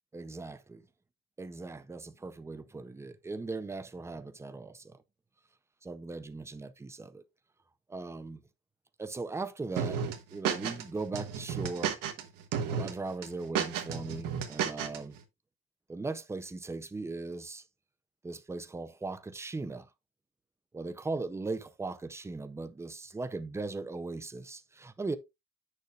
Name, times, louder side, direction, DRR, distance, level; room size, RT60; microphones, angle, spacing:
voice 1, 0.1-0.8 1.4-5.0 5.8-7.2 7.9-8.4 9.0-10.0 10.3-12.0 12.7-15.2 15.9-17.6 18.2-19.9 20.7-25.2, right 3 dB, 10° right, 0.5 m, -38 dB
sound 1, 9.8-10.8 11.1-12.2 12.5-12.9 13.2-15.0, right 8 dB, 70° right, 1.3 m, -32 dB
9.6 x 6.6 x 2.4 m
cardioid pair, 145°, 34 cm